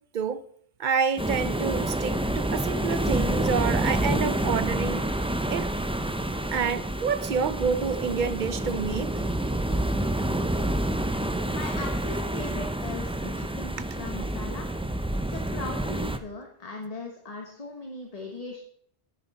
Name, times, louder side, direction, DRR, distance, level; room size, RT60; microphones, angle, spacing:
voice 1, 0.8-5.0 5.5-5.7 6.5-9.1, right 6 dB, 55° right, 13 dB, 0.7 m, -28 dB
sound 1, 1.2-16.2, right 1 dB, 10° right, 0.3 m, -28 dB
voice 2, 11.5-14.7 15.3-18.6, left 2 dB, 35° left, 2 dB, 1.3 m, -38 dB
10.0 x 9.8 x 4.1 m, 0.63 s
omnidirectional pair, 1.1 m